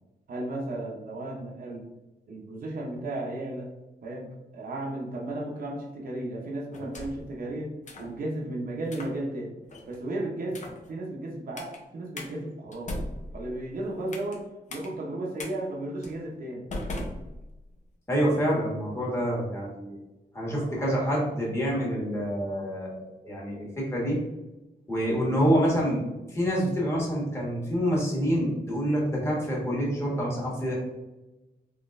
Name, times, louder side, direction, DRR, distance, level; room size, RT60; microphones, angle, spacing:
voice 1, 0.3-1.9 2.3-3.7 4.0-9.5 9.9-13.0 13.3-16.7, right 1 dB, 55° right, -2 dB, 0.7 m, -34 dB
sound 1, 6.7-7.3 7.9-8.1 8.8-9.2 9.7-10.0 10.5-10.9 11.6-11.8 12.2-12.3 12.7-14.4 14.7-14.9 15.4-15.5 16.0-16.2 16.7-17.8, left 1 dB, 45° left, 0.7 m, -38 dB
voice 2, 18.1-20.0 20.3-24.2 24.9-26.0 26.3-30.7, equal, 15° left, -5 dB, 1.4 m, -27 dB
3.9 x 2.9 x 2.5 m, 1.0 s
wide cardioid pair, 135°, 17 cm